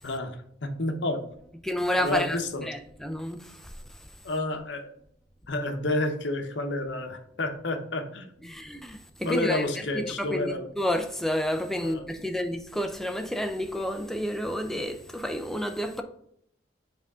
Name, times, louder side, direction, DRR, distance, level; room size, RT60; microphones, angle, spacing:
voice 1, 0.0-0.4 0.6-1.2 2.0-2.7 4.2-4.9 5.5-8.6 9.2-10.7 11.8-12.0, left 2 dB, 70° left, 0.9 m, -30 dB
voice 2, 1.6-3.7 8.5-9.7 9.9-16.0, equal, ahead, 0.5 m, -30 dB
7.9 x 3.7 x 3.6 m
head